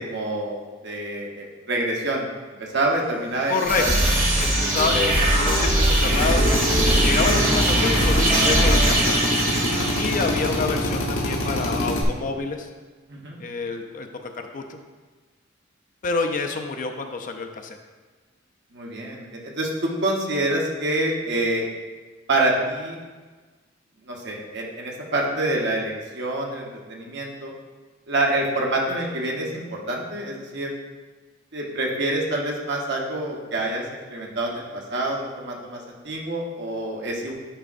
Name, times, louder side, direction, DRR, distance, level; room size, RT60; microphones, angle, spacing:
voice 1, 0.0-3.9 9.7-9.9 13.1-13.4 18.7-21.7 22.3-23.0 24.1-27.5 28.1-30.7 31.5-37.3, right 1 dB, 60° right, -1 dB, 1.1 m, -27 dB
sound 1, 3.3-10.8, right 2 dB, 45° right, 1.8 m, -24 dB
voice 2, 3.5-3.8 4.4-9.2 9.9-12.7 13.4-14.8 16.0-17.8, left 4 dB, 45° left, 5 dB, 0.5 m, -27 dB
sound 2, 3.6-8.9, equal, 25° right, 2.0 m, -22 dB
Drill, 6.0-12.0, left 1 dB, 80° left, 1.1 m, -26 dB
10.0 x 4.8 x 2.5 m, 1.4 s
head